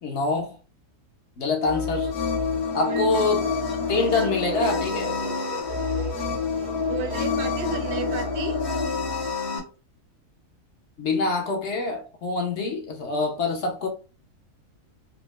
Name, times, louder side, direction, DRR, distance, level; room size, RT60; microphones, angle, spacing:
voice 1, 0.0-0.6 1.4-2.1 2.7-3.5 3.9-5.2 11.0-13.9, left 3 dB, 60° left, 0.8 m, -25 dB
sound 1, 1.6-9.6, left 4 dB, 85° left, 1.4 m, -27 dB
voice 2, 2.7-3.2 3.8-4.3 6.8-8.6, right 6 dB, 90° right, 1.3 m, -34 dB
sound 2, 3.8-8.4, right 4 dB, 55° right, 0.6 m, -39 dB
4.2 x 2.0 x 3.0 m
omnidirectional pair, 1.7 m